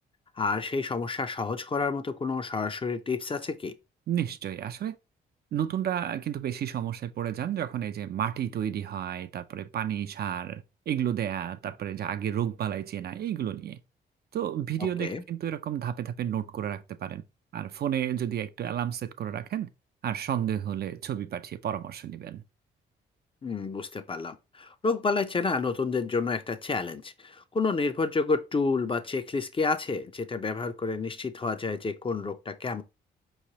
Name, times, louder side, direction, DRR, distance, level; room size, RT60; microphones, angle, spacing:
voice 1, 0.4-3.7 14.8-15.2 23.4-32.8, left 4 dB, 25° left, 0.5 m, -29 dB
voice 2, 4.1-5.0 5.5-13.8 14.3-17.2 17.5-19.7 20.0-22.4, right 10 dB, 55° right, 0.4 m, -31 dB
4.5 x 3.1 x 2.8 m
supercardioid pair, 60°, 20 cm